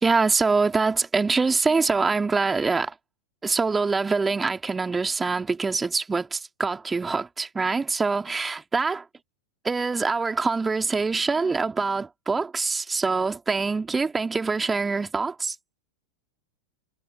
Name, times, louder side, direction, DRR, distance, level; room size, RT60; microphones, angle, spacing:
voice 1, 0.0-2.9 3.4-9.0 9.6-15.6, right 4 dB, 10° right, 2.4 m, -24 dB
figure-of-eight pair, 90°, 0 cm